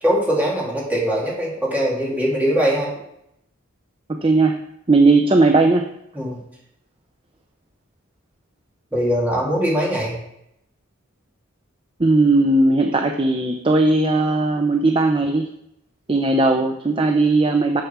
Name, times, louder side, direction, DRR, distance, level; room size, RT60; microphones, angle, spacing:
voice 1, 0.0-2.9 6.1-6.4 8.9-10.2, equal, 5° right, -5 dB, 2.6 m, -21 dB
voice 2, 4.2-4.6 4.9-5.8 12.0-15.5 16.1-17.8, right 2 dB, 25° right, 4 dB, 0.5 m, -17 dB
6.8 x 6.7 x 6.0 m, 0.78 s
head